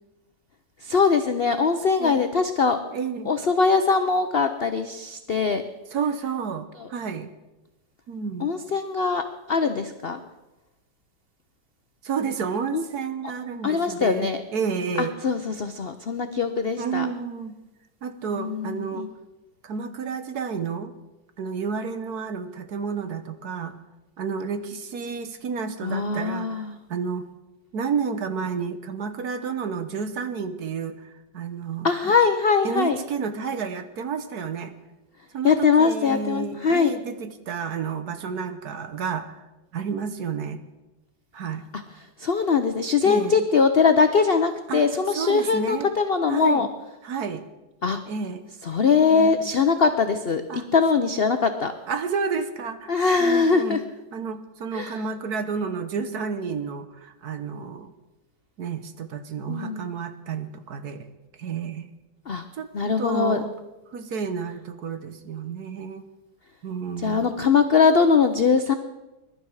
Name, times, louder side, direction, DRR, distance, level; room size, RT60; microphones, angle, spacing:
voice 1, 0.8-2.8 3.3-5.6 8.4-10.2 12.7-12.8 13.6-14.4 15.0-17.1 18.3-19.1 25.8-26.8 31.8-33.0 35.4-36.9 42.2-46.7 47.8-48.0 48.6-51.7 52.9-53.8 54.7-54.9 59.5-59.9 62.3-62.4 62.7-63.4 67.0-68.7, left 5 dB, 65° left, 8 dB, 0.5 m, -21 dB
voice 2, 2.9-3.3 5.9-7.3 8.1-8.5 12.0-15.1 16.8-17.6 18.0-19.1 19.6-20.9 21.4-23.7 24.2-27.2 27.7-32.1 32.6-34.7 35.3-39.4 39.7-40.6 41.3-41.7 43.0-43.5 44.7-45.9 46.3-46.7 47.0-47.4 48.1-48.5 49.0-49.5 50.5-50.7 51.0-51.1 51.9-53.8 54.1-57.9 58.6-61.1 61.4-61.9 62.5-62.7 63.0-63.5 63.9-66.0 66.6-67.4, right 6 dB, 60° right, 10 dB, 1.4 m, -31 dB
21.5 x 12.0 x 4.8 m, 1.0 s
omnidirectional pair, 2.1 m